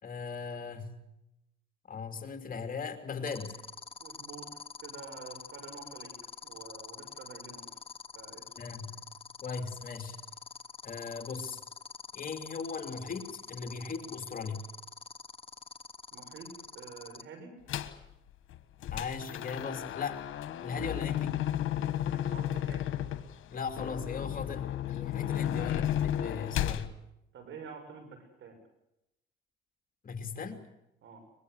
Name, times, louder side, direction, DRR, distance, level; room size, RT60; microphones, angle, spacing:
voice 1, 0.0-1.1 1.9-3.6 8.6-9.1 9.4-10.2 10.8-11.6 12.1-14.7 18.9-20.2 20.6-21.4 23.5-26.9 30.0-30.6, left 5 dB, 45° left, 6 dB, 3.1 m, -38 dB
sound 1, 3.3-17.2, left 5 dB, 30° left, 1.7 m, -45 dB
voice 2, 4.0-4.5 4.8-6.1 6.4-7.7 8.1-8.4 16.1-17.5 22.0-22.9 25.4-25.6 27.3-28.6 31.0-31.2, right 5 dB, 75° right, 7 dB, 6.8 m, -48 dB
sound 2, 17.7-18.0 18.5-26.9, left 11 dB, 80° left, 1.4 m, -33 dB
23.5 x 22.0 x 8.2 m, 0.85 s
cardioid pair, 90°, 20 cm